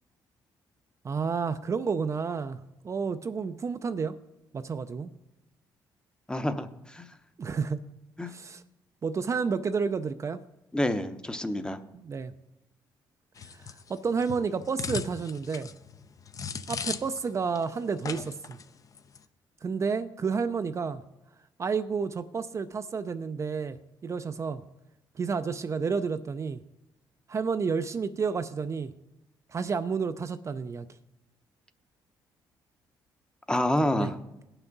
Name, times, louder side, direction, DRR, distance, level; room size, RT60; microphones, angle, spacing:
voice 1, 1.0-4.2 4.5-5.1 7.4-7.8 8.3-8.6 9.0-10.4 11.9-12.3 13.5-15.7 16.7-18.6 19.6-21.0 21.6-23.8 24.0-24.6 25.2-26.6 27.3-28.9 29.5-30.9 34.0-34.1, right 5 dB, 35° right, 10 dB, 0.5 m, -30 dB
voice 2, 6.3-7.1 8.2-8.3 10.7-11.8 33.5-34.2, left 1 dB, 10° left, 10 dB, 0.8 m, -28 dB
sound 1, 13.4-17.3 17.6-17.7 18.0-18.6 18.9-19.2, left 6 dB, 45° left, 0.6 m, -38 dB
17.5 x 6.0 x 4.0 m, 0.93 s
cardioid pair, 80°, 8 cm